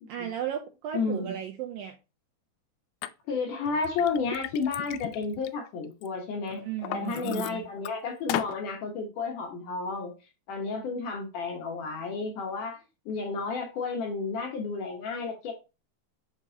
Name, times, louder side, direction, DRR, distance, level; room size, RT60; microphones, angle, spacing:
voice 1, 0.1-2.0 6.6-7.7, right 10 dB, 85° right, 4 dB, 2.1 m, -35 dB
voice 2, 0.9-1.4 3.3-6.6 6.9-10.1 10.5-12.8 13.1-15.5, left 4 dB, 65° left, 1 dB, 2.3 m, -32 dB
Liquid, 3.0-3.1 3.7-6.1 6.5-7.9 8.3-8.6, left 12 dB, 85° left, 2.4 m, -35 dB
7.4 x 5.3 x 2.8 m, 0.29 s
omnidirectional pair, 4.8 m